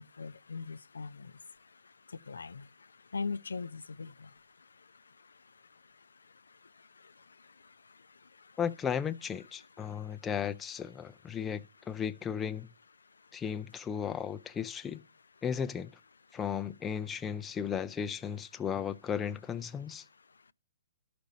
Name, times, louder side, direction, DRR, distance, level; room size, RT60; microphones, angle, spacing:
voice 1, 0.0-1.3 2.1-2.7 3.1-4.3, left 4 dB, 85° left, 0.4 m, -39 dB
voice 2, 8.6-12.7 13.3-15.0 15.4-15.9 16.3-20.0, left 7 dB, 15° left, 0.5 m, -35 dB
12.5 x 5.2 x 4.0 m
hypercardioid pair, 135°, 0 cm